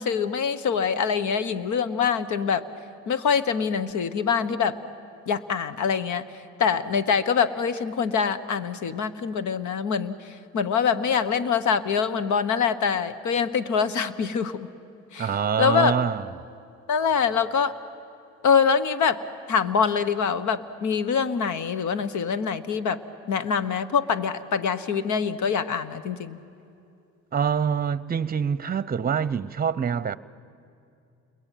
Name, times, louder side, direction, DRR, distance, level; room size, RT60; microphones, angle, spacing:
voice 1, 0.0-2.6 3.1-4.7 5.3-6.2 6.6-14.6 15.1-15.9 16.9-17.7 18.4-19.2 19.5-23.0 23.3-26.4, left 6 dB, 75° left, 1.3 m, -24 dB
voice 2, 15.2-16.2 27.3-30.2, right 7 dB, 30° right, 0.8 m, -25 dB
29.5 x 22.0 x 9.2 m
cardioid pair, 90°, 30 cm